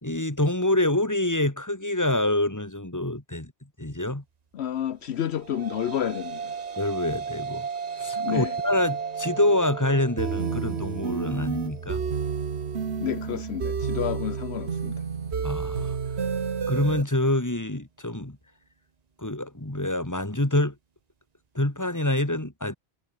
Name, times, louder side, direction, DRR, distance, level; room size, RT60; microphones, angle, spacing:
voice 1, 0.0-3.5 3.8-4.2 6.8-7.7 8.0-12.0 15.4-16.0 16.7-18.4 19.2-20.7 21.5-22.8, left 1 dB, 15° left, 2.6 m, -26 dB
voice 2, 4.5-6.5 8.2-8.6 13.0-15.0, left 10 dB, 75° left, 1.0 m, -30 dB
sound 1, 5.2-13.8, right 6 dB, 40° right, 0.9 m, -35 dB
sound 2, 10.2-17.0, right 6 dB, 75° right, 1.6 m, -30 dB
omnidirectional pair, 1.1 m